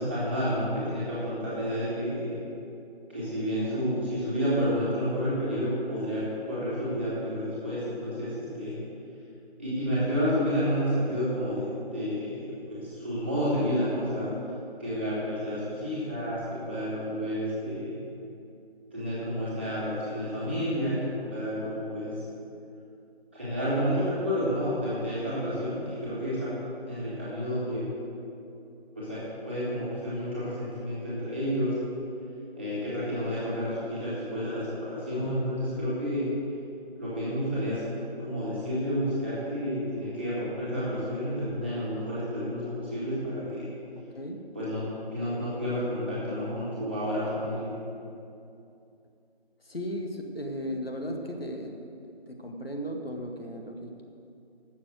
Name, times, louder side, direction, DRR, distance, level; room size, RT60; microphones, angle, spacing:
voice 1, 0.0-2.4 3.1-8.8 9.6-14.3 14.8-18.0 18.9-22.1 23.3-26.5 26.8-27.8 29.0-31.7 32.6-36.3 37.0-43.7 44.5-44.8 45.1-47.7, equal, 10° right, -11 dB, 1.9 m, -30 dB
voice 2, 44.1-44.5 49.7-51.7 52.3-54.0, equal, 65° left, 2 dB, 1.9 m, -35 dB
12.0 x 7.3 x 7.9 m, 2.7 s
figure-of-eight pair, 170°, 31 cm